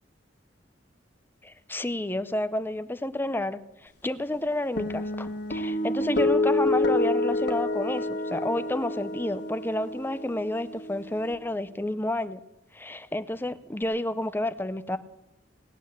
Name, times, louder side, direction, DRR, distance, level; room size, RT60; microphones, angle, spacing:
voice 1, 1.4-12.4 12.7-15.0, left 1 dB, 10° left, 12 dB, 0.6 m, -30 dB
sound 1, 4.8-11.3, left 2 dB, 65° left, 1.6 m, -28 dB
19.0 x 8.9 x 8.2 m, 0.91 s
head